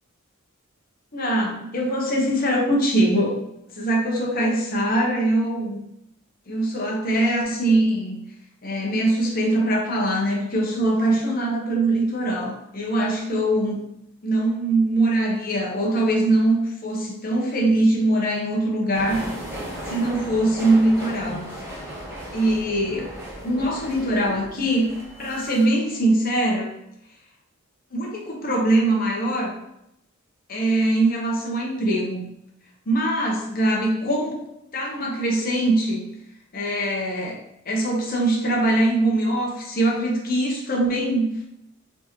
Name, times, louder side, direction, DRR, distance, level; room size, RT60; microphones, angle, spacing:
voice 1, 1.1-3.3 3.7-5.8 6.5-8.2 8.6-13.8 14.2-19.3 19.9-21.4 22.3-23.1 23.4-26.7 27.9-29.5 30.5-32.2 32.9-34.4 34.7-36.0 36.5-37.4 37.6-41.5, right 1 dB, 45° left, -2 dB, 0.9 m, -22 dB
sound 1, 18.9-25.7, equal, 10° right, 1.0 m, -36 dB
4.0 x 3.6 x 3.0 m, 0.81 s
head